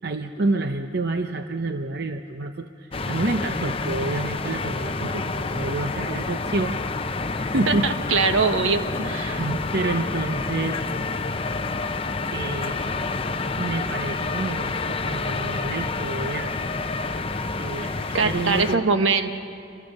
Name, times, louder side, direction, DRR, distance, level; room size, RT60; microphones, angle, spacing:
voice 1, 0.0-6.8 7.0-8.2 9.3-10.8 12.3-12.8 13.6-16.5 16.8-17.0 17.6-18.9, right 2 dB, 50° right, 7 dB, 0.7 m, -28 dB
sound 1, 2.9-18.8, left 3 dB, 30° left, 0.7 m, -28 dB
voice 2, 7.7-9.4 17.8-17.9 18.1-19.3, right 4 dB, 80° right, 8 dB, 1.2 m, -22 dB
28.0 x 21.5 x 6.5 m, 2.4 s
head